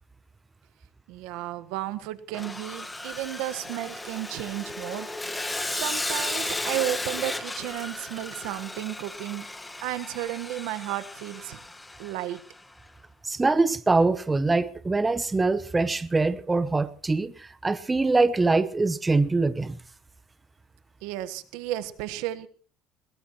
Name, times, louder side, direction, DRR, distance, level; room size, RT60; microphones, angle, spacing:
voice 1, 1.1-5.1 5.7-9.5 9.8-11.6 12.0-12.4 21.0-22.5, right 14 dB, 85° right, 1.4 m, -33 dB
Sawing, 2.3-12.6, left 2 dB, 10° left, 1.2 m, -35 dB
voice 2, 13.2-19.8, right 3 dB, 15° right, 0.9 m, -23 dB
21.5 x 21.0 x 3.1 m
cardioid pair, 130°, 0 cm